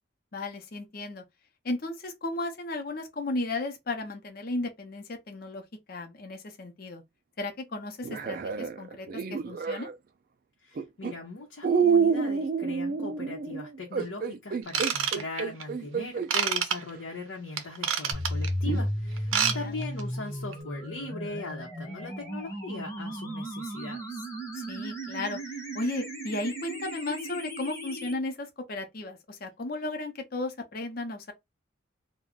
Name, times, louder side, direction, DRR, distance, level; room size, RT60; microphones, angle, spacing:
voice 1, 0.3-1.2 1.6-7.0 7.4-9.9 19.3-19.7 24.5-25.4 25.7-31.3, left 2 dB, 45° left, 0.6 m, -35 dB
sound 1, 8.0-9.9 10.8-11.1 11.6-16.3 16.9-17.0 18.7-18.9, right 6 dB, 45° right, 0.3 m, -28 dB
voice 2, 10.6-24.2, left 2 dB, 85° left, 0.8 m, -39 dB
Ratchet pawl / Tools, 14.7-15.6 16.3-16.8 17.6-18.5 19.2-19.6 19.8-20.0 20.5-20.6, right 8 dB, 85° right, 0.6 m, -27 dB
sound 2, 18.1-28.1, equal, 15° left, 0.8 m, -35 dB
2.4 x 2.2 x 3.5 m
head